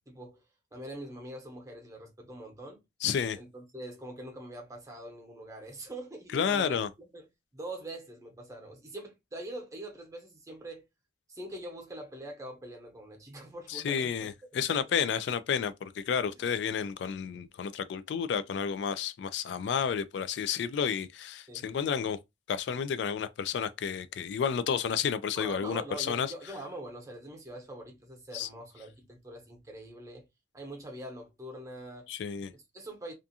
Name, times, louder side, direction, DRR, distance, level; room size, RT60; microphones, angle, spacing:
voice 1, 0.1-0.4 0.7-2.8 3.4-6.8 7.1-7.2 7.5-10.8 11.3-14.3 14.7-14.9 21.5-21.6 25.3-30.3 30.5-32.1 32.5-33.1, right 1 dB, 20° right, 0.8 m, -43 dB
voice 2, 3.0-3.4 6.3-6.9 13.7-22.2 22.5-26.3 28.3-28.5 32.1-32.5, left 7 dB, 75° left, 0.3 m, -31 dB
2.5 x 2.3 x 2.6 m
head